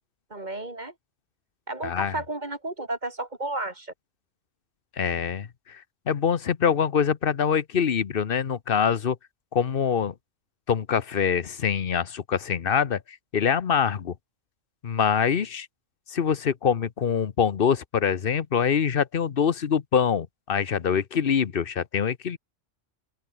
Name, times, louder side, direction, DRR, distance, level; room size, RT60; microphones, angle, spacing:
voice 1, 0.3-0.9 1.7-3.9, right 2 dB, 35° right, 3.0 m, -32 dB
voice 2, 1.8-2.2 5.0-9.2 9.5-10.1 10.7-14.1 14.8-15.7 16.1-22.4, left 7 dB, 50° left, 1.0 m, -24 dB
open air
omnidirectional pair, 1.3 m